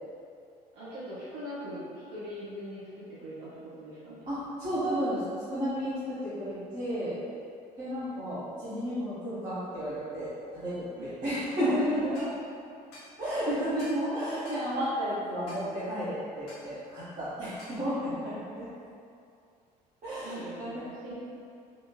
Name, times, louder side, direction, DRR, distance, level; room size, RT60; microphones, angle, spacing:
voice 1, 0.7-3.5 3.8-4.3 11.0-11.1 11.9-12.3 20.2-21.2, equal, 60° right, -10 dB, 1.3 m, -41 dB
voice 2, 4.3-5.2 5.5-7.2 7.8-12.2 13.2-18.7 20.0-20.7, equal, 40° right, -15 dB, 1.4 m, -32 dB
sound 1, 12.1-12.3 12.9-13.1 13.8-14.1 14.5-14.7 15.5-15.7 16.5-16.7 17.6-17.8, left 1 dB, 65° left, 0.9 m, -49 dB
4.3 x 2.8 x 2.9 m, 2.5 s
figure-of-eight pair, 55°, 21 cm